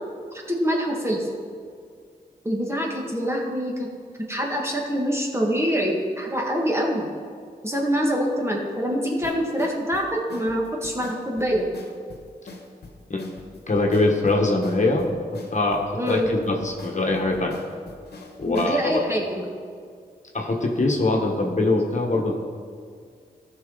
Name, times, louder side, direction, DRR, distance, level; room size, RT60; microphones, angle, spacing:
voice 1, 0.5-1.3 2.4-3.9 4.3-7.1 7.6-11.7 16.0-16.3 18.5-19.5, equal, 15° right, -1 dB, 2.0 m, -25 dB
sound 1, 9.2-18.8, left 3 dB, 80° left, 1.2 m, -43 dB
voice 2, 13.7-15.1 15.5-17.5 18.4-19.0 20.3-22.3, left 2 dB, 45° left, 0 dB, 1.4 m, -22 dB
14.0 x 6.0 x 4.0 m, 2.1 s
cardioid pair, 50°, 17 cm